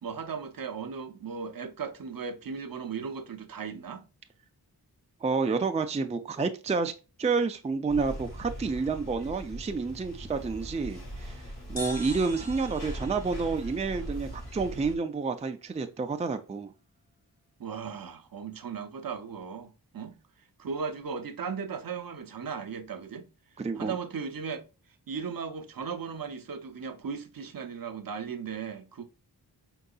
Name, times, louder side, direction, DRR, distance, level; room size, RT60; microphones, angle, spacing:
voice 1, 0.0-4.0 17.6-20.2 20.6-23.3 23.8-24.6 25.1-29.0, right 6 dB, 60° right, 0.6 m, -37 dB
voice 2, 5.2-6.9 7.2-11.4 11.7-16.7 23.6-23.9, right 4 dB, 20° right, 0.4 m, -29 dB
sound 1, 7.9-14.9, equal, 75° left, 1.8 m, -40 dB
sound 2, 11.8-15.3, equal, 40° left, 1.5 m, -44 dB
4.5 x 3.8 x 2.3 m
wide cardioid pair, 65°, 39 cm